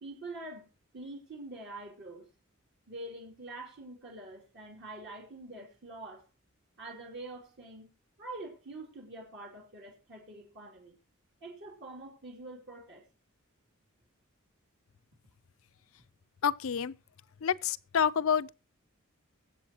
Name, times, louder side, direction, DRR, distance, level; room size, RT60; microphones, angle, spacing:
voice 1, 0.0-2.3 2.9-6.3 6.8-7.9 8.2-11.0 11.4-13.0, right 2 dB, 55° right, 2.8 m, -45 dB
voice 2, 16.4-16.9 17.4-18.5, left 7 dB, 70° left, 0.5 m, -28 dB
23.5 x 7.8 x 2.9 m
head